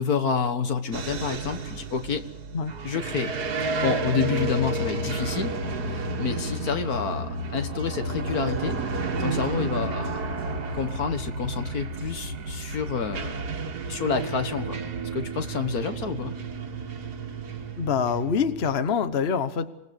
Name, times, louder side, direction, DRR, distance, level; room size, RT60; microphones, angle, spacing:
voice 1, 0.0-2.2 2.8-3.3 3.8-5.5 5.9-8.8 9.2-10.2 10.7-13.5 13.9-14.8 15.1-16.3, left 6 dB, 70° left, 8 dB, 1.9 m, -28 dB
sound 1, 0.9-18.7, right 3 dB, 85° right, 2.0 m, -31 dB
voice 2, 17.8-19.7, left 6 dB, 45° left, 11 dB, 1.3 m, -25 dB
26.5 x 18.5 x 8.3 m, 0.90 s
omnidirectional pair, 1.6 m